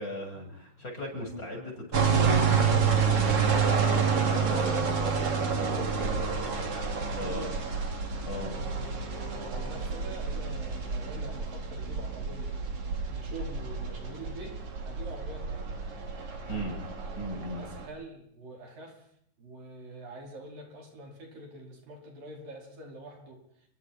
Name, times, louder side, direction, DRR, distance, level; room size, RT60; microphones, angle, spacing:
voice 1, 0.0-6.2 7.2-7.6 8.2-8.6 16.5-16.8 17.2-17.7, equal, 20° left, 1 dB, 7.8 m, -38 dB
sound 1, 1.9-17.9, right 5 dB, 40° right, 3.5 m, -29 dB
voice 2, 7.0-7.8 8.2-15.7 16.4-16.7 17.5-19.1 19.4-23.7, right 2 dB, 70° right, 1 dB, 6.5 m, -45 dB
29.5 x 23.5 x 4.4 m, 0.66 s
omnidirectional pair, 4.2 m